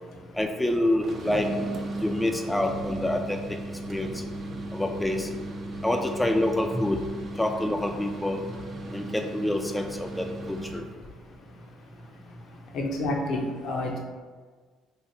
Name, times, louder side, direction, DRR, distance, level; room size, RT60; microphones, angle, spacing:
voice 1, 0.4-1.5 2.0-3.6 3.9-4.2 4.7-5.3 5.8-7.0 7.4-8.4 8.9-10.8, left 1 dB, 10° left, 3 dB, 0.3 m, -27 dB
sound 1, 0.9-10.9, right 2 dB, 50° right, 0.5 m, -36 dB
voice 2, 12.7-14.0, left 1 dB, 65° left, 0 dB, 0.6 m, -29 dB
3.1 x 2.5 x 2.7 m, 1.5 s
hypercardioid pair, 55°, 0 cm